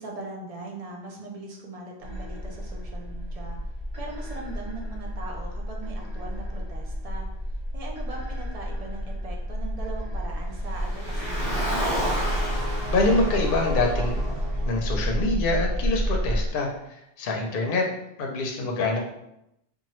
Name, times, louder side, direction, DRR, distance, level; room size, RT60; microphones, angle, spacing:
voice 1, 0.0-3.6 4.0-7.3 7.7-11.7, right 2 dB, 45° right, 0 dB, 0.6 m, -40 dB
sound 1, 2.0-16.5, equal, 80° right, 0.9 m, -30 dB
Car, 10.7-15.1, equal, 25° right, 1.5 m, -32 dB
Brass instrument, 10.7-15.0, right 1 dB, 65° right, 1.3 m, -39 dB
voice 2, 12.9-14.2 14.7-17.9 18.2-19.0, left 2 dB, 60° left, 1 dB, 0.7 m, -25 dB
2.8 x 2.3 x 3.0 m, 0.83 s
omnidirectional pair, 1.1 m